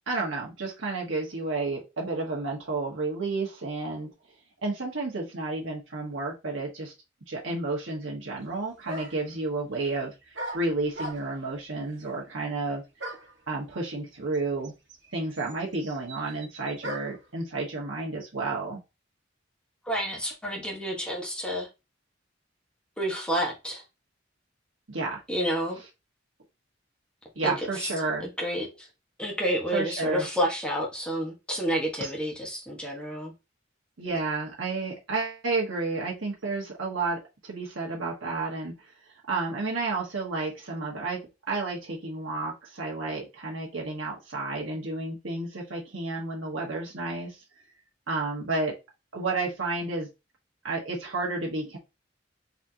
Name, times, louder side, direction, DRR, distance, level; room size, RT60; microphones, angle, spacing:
voice 1, 0.1-4.1 4.6-6.9 7.3-12.8 13.5-14.7 15.1-18.8 24.9-25.2 27.3-28.3 29.7-30.3 32.0-32.1 34.0-38.7 39.3-47.4 48.1-48.7 49.1-50.1 50.6-51.8, right 3 dB, 90° right, 1.3 m, -31 dB
sound 1, 8.4-8.5 8.9-9.3 10.3-11.5 13.0-13.4 14.3-14.4 14.6-17.3, right 1 dB, 65° right, 1.6 m, -39 dB
voice 2, 19.9-21.7 23.0-23.8 25.3-25.8 27.4-27.5 27.8-27.9 28.4-28.9 29.2-33.3, equal, 5° left, 1.4 m, -29 dB
4.1 x 3.7 x 2.9 m
head